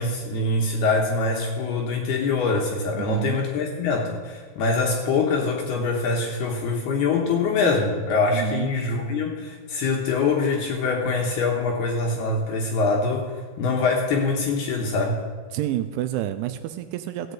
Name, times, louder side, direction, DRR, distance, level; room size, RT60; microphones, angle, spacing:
voice 1, 0.0-13.3 13.6-15.2, left 3 dB, 70° left, 0 dB, 2.6 m, -24 dB
voice 2, 2.9-3.5 8.3-8.8 15.5-17.3, right 13 dB, 85° right, 9 dB, 2.8 m, -29 dB
16.0 x 6.7 x 8.0 m, 1.5 s
omnidirectional pair, 5.6 m